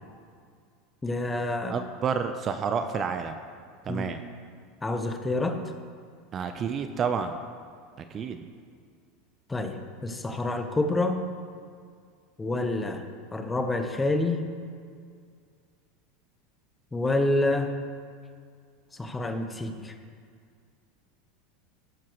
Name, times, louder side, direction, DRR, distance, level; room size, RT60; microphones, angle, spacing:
voice 1, 1.0-1.8 3.9-4.1 4.8-5.6 9.5-11.2 12.4-13.1 13.3-14.4 16.9-17.7 19.0-19.9, left 2 dB, 15° left, 6 dB, 0.9 m, -27 dB
voice 2, 1.7-3.4 3.9-4.2 6.3-7.3 8.1-8.4, right 6 dB, 35° right, 8 dB, 0.6 m, -29 dB
12.0 x 11.0 x 3.1 m, 2.1 s
supercardioid pair, 120°, 0 cm